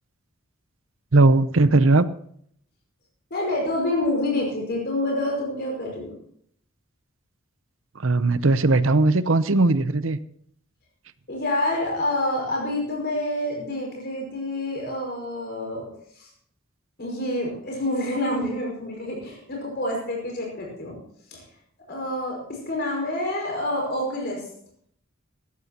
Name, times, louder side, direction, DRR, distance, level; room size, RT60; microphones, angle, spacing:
voice 1, 1.1-2.1 8.0-10.2, right 2 dB, 70° right, 14 dB, 0.7 m, -18 dB
voice 2, 3.3-6.1 11.3-15.9 16.2-16.3 17.0-21.0 21.3-21.4 21.9-24.5, left 1 dB, 55° left, -1 dB, 5.5 m, -27 dB
18.5 x 13.5 x 2.9 m, 0.64 s
head